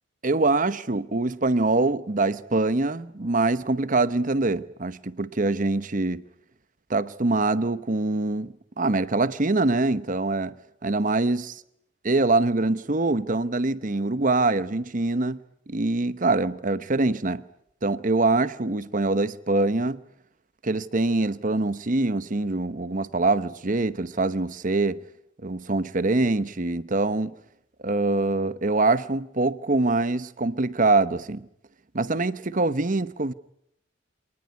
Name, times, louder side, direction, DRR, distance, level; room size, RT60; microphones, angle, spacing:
voice 1, 0.2-6.2 6.9-10.5 10.8-11.5 12.0-15.4 15.7-17.4 17.8-20.0 20.6-25.0 25.4-27.3 27.8-31.5 31.9-33.3, right 2 dB, 40° right, 1.0 m, -24 dB
26.5 x 19.5 x 9.6 m
head